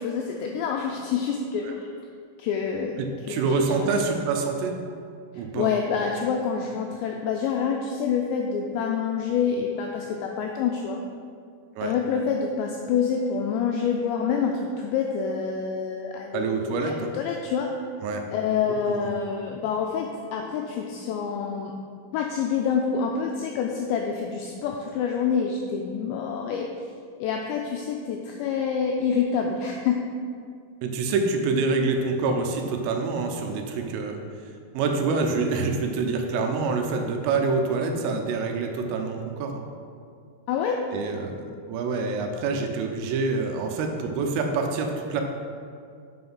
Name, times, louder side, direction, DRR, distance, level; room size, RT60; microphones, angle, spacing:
voice 1, 0.0-1.9 2.4-3.0 3.3-4.1 5.3-11.0 11.8-17.7 18.3-21.7 22.1-26.7 27.2-30.0 40.5-40.8, left 6 dB, 90° left, 2 dB, 2.5 m, -27 dB
voice 2, 3.0-4.7 5.4-5.7 11.8-11.9 16.3-17.1 18.0-18.2 18.9-19.1 30.8-34.2 34.8-39.6 40.9-45.2, right 4 dB, 85° right, 4 dB, 3.5 m, -26 dB
7.8 x 6.9 x 5.5 m, 2.3 s
omnidirectional pair, 5.7 m